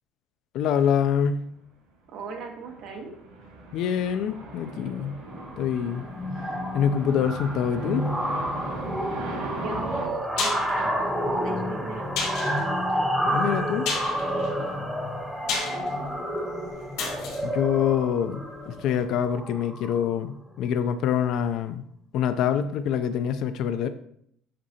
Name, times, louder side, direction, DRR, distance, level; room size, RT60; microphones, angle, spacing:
voice 1, 0.5-1.4 3.7-5.2 5.6-6.0 6.7-8.1 13.2-13.9 17.4-21.8 22.1-23.9, left 8 dB, 55° left, 10 dB, 0.4 m, -25 dB
voice 2, 2.1-3.1 9.4-12.4 15.7-16.0, right 4 dB, 50° right, 2 dB, 1.1 m, -38 dB
sound 1, 2.2-10.1, right 2 dB, 85° right, 2.3 m, -39 dB
sound 2, 4.2-4.5 4.8-5.0 5.3-20.2, equal, 5° right, 0.8 m, -30 dB
sound 3, 10.0-18.8 19.1-19.2, left 4 dB, 70° left, 2.8 m, -34 dB
7.6 x 5.5 x 2.8 m, 0.69 s
cardioid pair, 170°, 0 cm